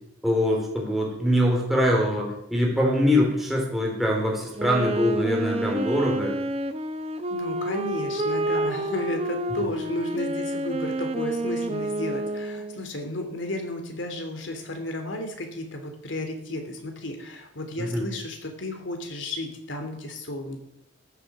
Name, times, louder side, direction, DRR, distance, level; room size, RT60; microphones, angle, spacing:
voice 1, 0.2-6.3 9.6-9.7 17.8-18.1, left 1 dB, ahead, -2 dB, 3.9 m, -23 dB
Wind instrument woodwind instrument, 4.5-12.9, right 1 dB, 30° right, 0.8 m, -29 dB
voice 2, 7.3-20.6, left 1 dB, 75° left, 5 dB, 3.0 m, -33 dB
14.0 x 8.6 x 7.5 m, 0.78 s
head